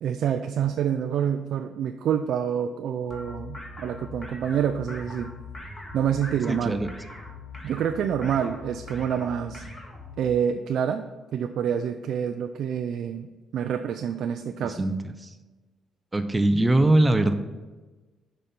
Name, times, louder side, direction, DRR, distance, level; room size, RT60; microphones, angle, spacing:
voice 1, 0.0-5.3 5.9-6.8 7.6-9.6 10.2-11.0 11.3-14.9, right 8 dB, 75° right, 6 dB, 0.4 m, -27 dB
sound 1, 3.1-10.2, left 2 dB, 25° left, 1.7 m, -41 dB
voice 2, 6.5-6.9 14.6-15.3 16.1-17.3, right 1 dB, 15° right, 9 dB, 0.7 m, -22 dB
6.4 x 5.2 x 5.8 m, 1.2 s
cardioid pair, 90°, 0 cm